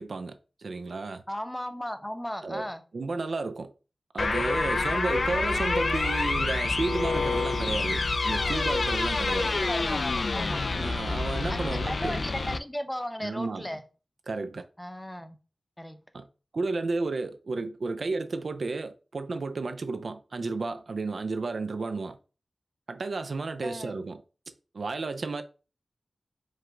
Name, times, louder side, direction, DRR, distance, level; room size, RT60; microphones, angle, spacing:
voice 1, 0.0-1.2 2.4-2.6 2.9-3.7 4.1-9.6 10.8-12.2 13.2-13.7 14.3-14.6 16.1-16.3 16.5-22.2 22.9-24.2 24.7-25.4, right 3 dB, 75° right, 0.4 m, -32 dB
voice 2, 1.3-2.8 9.3-10.7 11.5-13.8 14.8-15.4 15.8-16.0 23.6-24.0, equal, 10° left, 0.7 m, -36 dB
sound 1, 4.2-12.6, left 3 dB, 65° left, 0.3 m, -27 dB
4.7 x 2.2 x 3.7 m
cardioid pair, 50°, 0 cm